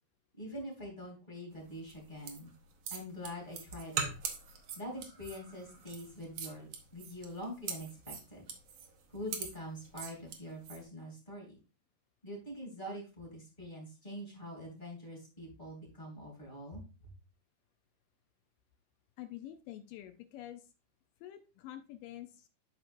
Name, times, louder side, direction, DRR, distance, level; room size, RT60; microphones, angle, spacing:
voice 1, 0.4-2.5 2.9-4.1 4.7-8.5 9.1-11.6 12.2-16.8, equal, 15° left, -3 dB, 2.5 m, -44 dB
sound 1, 1.8-10.8, right 6 dB, 80° right, 1.4 m, -42 dB
voice 2, 19.2-20.7 21.2-22.5, left 13 dB, 80° left, 7 dB, 2.0 m, -47 dB
12.0 x 4.4 x 2.6 m, 0.32 s
omnidirectional pair, 4.4 m